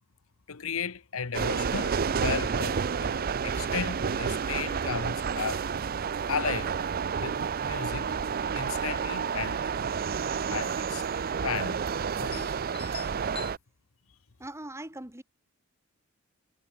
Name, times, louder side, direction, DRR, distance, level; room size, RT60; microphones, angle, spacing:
voice 1, 0.5-5.7 6.3-6.7 7.2-8.1 8.5-9.6 10.5-11.0 11.4-11.8 12.1-12.5, left 6 dB, 70° left, 1.0 m, -34 dB
sound 1, 1.3-13.6, right 6 dB, 45° right, 0.5 m, -30 dB
sound 2, 7.7-8.2 9.3-9.4 9.6-9.8 10.4-10.7 10.9-11.0 11.7-11.8 12.3-13.5, left 6 dB, 25° left, 4.0 m, -46 dB
voice 2, 14.4-15.2, right 1 dB, 15° right, 2.7 m, -41 dB
head